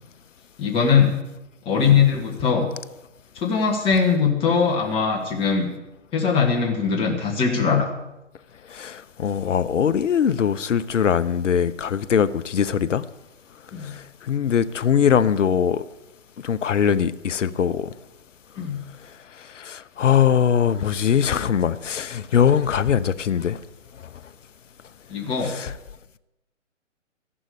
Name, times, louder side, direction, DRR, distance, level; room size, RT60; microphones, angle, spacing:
voice 1, 0.6-1.2 1.7-2.7 3.4-5.7 6.1-7.9 13.7-13.9 18.6-18.8 25.1-25.5, left 6 dB, 15° left, 1.8 m, -21 dB
voice 2, 8.7-13.0 13.8-15.8 16.4-17.9 19.5-23.6 25.4-25.7, left 8 dB, 70° left, 0.8 m, -21 dB
14.5 x 11.0 x 5.0 m
hypercardioid pair, 145°, 38 cm